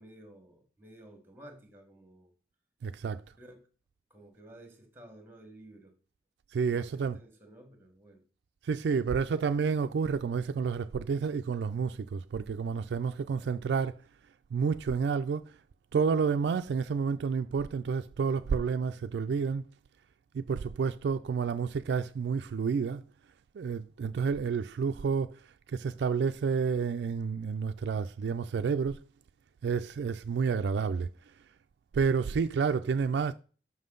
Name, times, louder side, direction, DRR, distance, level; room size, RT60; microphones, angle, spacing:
voice 1, 0.0-2.3 3.4-3.6 4.1-5.9 6.7-8.2 13.2-13.7 32.3-32.4, right 1 dB, 15° right, 1.4 m, -53 dB
voice 2, 2.8-3.2 6.5-7.2 8.6-14.0 14.5-15.5 15.9-19.7 20.3-23.0 23.5-25.4 25.7-29.0 29.6-31.1 31.9-33.3, right 5 dB, 75° right, 0.3 m, -30 dB
6.1 x 5.5 x 3.8 m
head